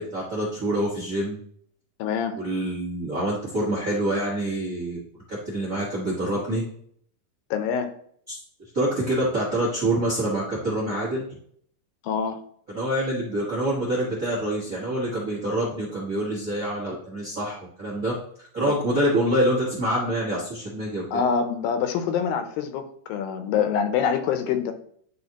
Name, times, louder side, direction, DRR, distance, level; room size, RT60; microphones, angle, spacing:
voice 1, 0.0-1.4 2.4-5.0 5.3-6.6 8.3-8.4 8.7-11.3 12.7-18.1 18.5-21.0, right 1 dB, 40° right, -6 dB, 1.2 m, -26 dB
voice 2, 2.0-2.4 7.5-7.9 12.0-12.4 18.7-18.8 21.1-24.7, left 7 dB, 80° left, 8 dB, 2.4 m, -25 dB
10.5 x 4.1 x 2.9 m, 0.62 s
omnidirectional pair, 4.1 m